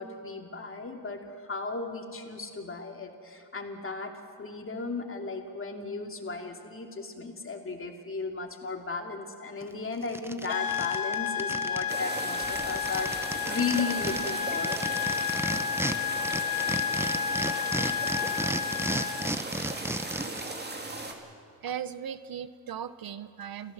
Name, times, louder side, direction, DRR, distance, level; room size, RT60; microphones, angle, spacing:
voice 1, 0.0-4.1 4.4-14.8, left 4 dB, 30° left, 3 dB, 2.6 m, -35 dB
sound 1, 9.6-9.7 10.0-11.9 12.2-12.3 12.5-16.0 16.2-20.5, right 1 dB, 5° right, 0.8 m, -33 dB
sound 2, 10.5-19.4, left 8 dB, 55° left, 0.9 m, -31 dB
sound 3, 11.9-21.1, right 2 dB, 25° right, 2.5 m, -37 dB
voice 2, 20.9-21.2 21.6-23.7, right 8 dB, 55° right, 13 dB, 0.8 m, -38 dB
28.5 x 16.0 x 7.4 m, 2.3 s
cardioid pair, 110°, 42 cm